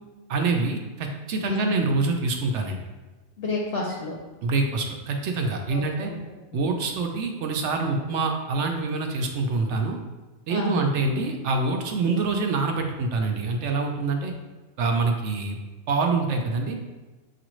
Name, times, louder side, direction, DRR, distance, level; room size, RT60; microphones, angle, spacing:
voice 1, 0.3-2.8 4.4-6.1 6.5-10.0 10.5-14.3 14.8-15.6 15.9-16.9, right 3 dB, 70° right, 3 dB, 0.9 m, -25 dB
voice 2, 1.4-1.8 3.4-4.2 5.7-6.1 6.5-6.6 10.5-10.9, left 3 dB, 70° left, -2 dB, 0.9 m, -30 dB
6.7 x 2.5 x 3.0 m, 1.2 s
omnidirectional pair, 1.3 m